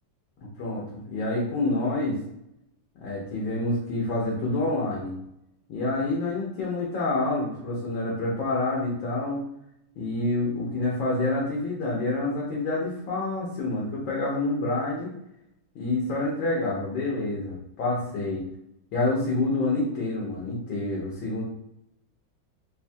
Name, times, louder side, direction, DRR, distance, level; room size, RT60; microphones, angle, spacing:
voice 1, 1.1-2.2 3.0-5.1 5.7-9.4 10.0-15.1 15.7-18.4 18.9-21.4, left 2 dB, 85° left, -4 dB, 1.6 m, -27 dB
4.6 x 2.2 x 2.6 m, 0.79 s
omnidirectional pair, 2.0 m